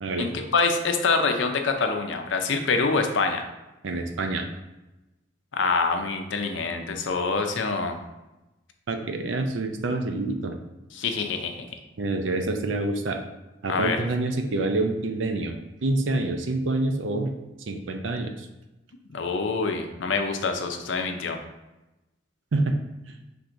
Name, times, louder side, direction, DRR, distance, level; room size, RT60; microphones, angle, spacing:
voice 1, 0.2-3.5 5.5-8.0 10.9-11.7 13.7-14.0 19.1-21.4, left 4 dB, 70° left, 5 dB, 0.5 m, -25 dB
voice 2, 3.8-4.5 8.9-10.6 12.0-13.2 13.6-15.6 15.8-17.3 17.7-18.5 22.5-22.8, right 2 dB, 70° right, 5 dB, 0.5 m, -27 dB
5.8 x 3.4 x 2.5 m, 1.0 s
head